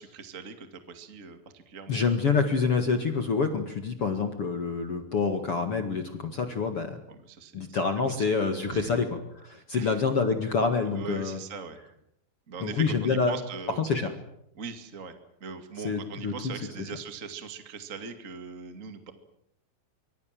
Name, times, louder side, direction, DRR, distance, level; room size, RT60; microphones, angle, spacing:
voice 1, 0.0-2.3 7.1-8.2 8.7-8.9 9.7-10.0 10.9-11.8 12.5-14.1 14.5-15.1 15.4-19.1, right 5 dB, 30° right, 8 dB, 1.6 m, -41 dB
voice 2, 1.9-7.0 7.5-9.1 9.3-11.4 12.6-13.4 13.8-14.1 15.8-16.3, left 5 dB, 45° left, 7 dB, 2.1 m, -27 dB
25.0 x 24.5 x 7.6 m, 0.73 s
omnidirectional pair, 4.9 m